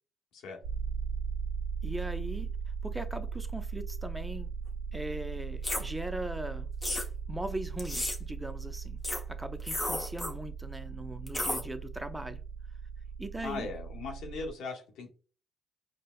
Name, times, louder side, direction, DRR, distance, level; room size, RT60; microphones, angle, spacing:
sound 1, 0.6-14.5, right 6 dB, 75° right, 0.3 m, -38 dB
voice 1, 1.8-2.5 2.8-4.5 4.9-6.7 7.3-9.0 9.3-12.4 13.2-13.7, right 1 dB, 10° right, 0.5 m, -39 dB
sound 2, 5.6-5.8 6.8-7.1 7.8-8.2 9.0-9.2 9.6-10.3 11.3-11.6, left 1 dB, 15° left, 0.8 m, -32 dB
voice 2, 13.4-15.1, left 4 dB, 80° left, 0.9 m, -39 dB
4.9 x 2.1 x 2.2 m
supercardioid pair, 75°, 0 cm